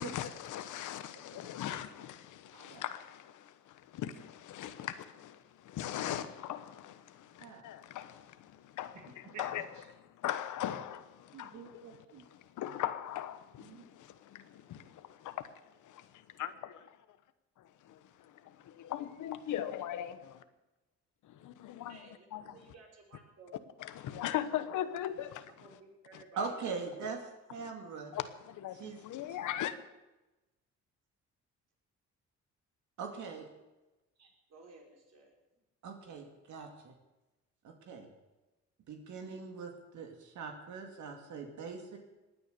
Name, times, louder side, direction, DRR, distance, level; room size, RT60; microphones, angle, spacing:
voice 1, 0.0-15.5 15.8-16.1 16.4-16.5 17.8-20.2 21.3-22.0 22.3-22.5 23.8-25.5 28.1-29.7, left 11 dB, 80° left, 1.2 m, -40 dB
voice 2, 2.5-2.8 7.4-7.6 8.9-9.0 9.3-9.4 11.3-12.2 13.6-13.9 26.4-27.2 27.5-28.1 28.7-29.0 33.0-33.5 35.8-36.9 37.6-38.1 38.9-42.0, right 5 dB, 75° right, 2.4 m, -42 dB
voice 3, 21.9-23.7 24.7-24.8 25.2-27.2 34.2-35.3, right 3 dB, 60° right, 5.4 m, -56 dB
18.5 x 9.9 x 6.8 m
cardioid pair, 90°, 30 cm